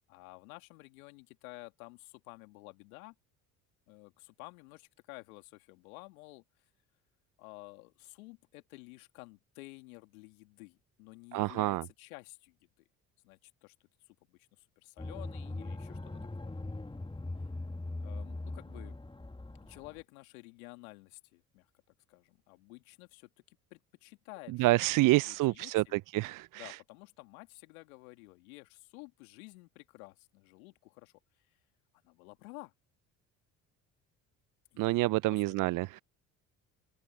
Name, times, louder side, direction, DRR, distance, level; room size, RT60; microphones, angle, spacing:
voice 1, 0.1-3.1 3.9-6.4 7.4-12.8 13.2-13.7 14.1-16.5 18.0-19.0 19.6-21.7 22.1-26.0 26.5-31.1 32.0-32.7 34.7-35.6, left 25 dB, 80° left, 2.5 m, -52 dB
voice 2, 11.3-11.8 24.6-26.7 34.8-36.0, right 19 dB, 50° right, 0.5 m, -28 dB
sound 1, 15.0-20.0, left 2 dB, 10° left, 2.2 m, -41 dB
hypercardioid pair, 60°, 42 cm